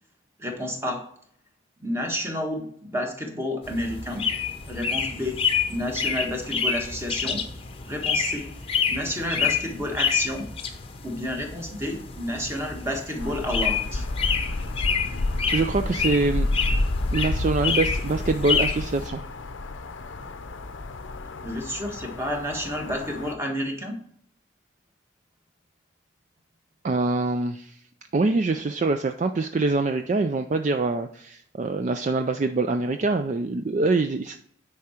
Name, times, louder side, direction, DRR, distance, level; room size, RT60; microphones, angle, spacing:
voice 1, 0.4-1.0 1.8-4.3 4.7-5.4 5.7-7.4 7.8-8.5 8.9-10.5 11.0-14.1 21.4-24.0, left 1 dB, 15° right, 2 dB, 1.4 m, -30 dB
sound 1, 3.6-19.1, left 6 dB, 30° left, 0.8 m, -28 dB
sound 2, 13.2-23.3, left 2 dB, 65° left, 0.6 m, -30 dB
voice 2, 15.5-16.5 17.1-19.2 26.8-27.8 28.1-34.4, right 3 dB, 35° right, 8 dB, 0.4 m, -24 dB
9.6 x 4.8 x 4.4 m, 0.63 s
head